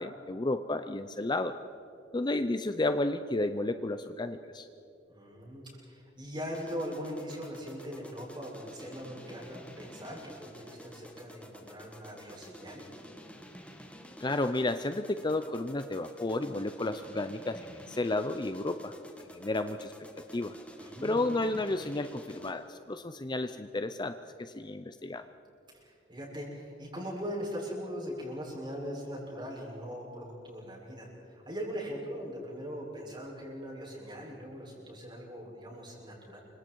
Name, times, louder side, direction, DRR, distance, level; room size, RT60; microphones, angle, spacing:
voice 1, 0.0-1.6 2.1-4.7 14.2-19.0 19.3-19.9 20.3-20.5 21.0-25.2, left 2 dB, 25° left, 10 dB, 0.6 m, -32 dB
voice 2, 5.1-12.8 20.8-21.3 25.7-36.4, equal, 25° right, -3 dB, 6.9 m, -40 dB
sound 1, 6.5-22.7, equal, 5° left, 1.8 m, -50 dB
28.5 x 25.0 x 4.7 m, 2.7 s
head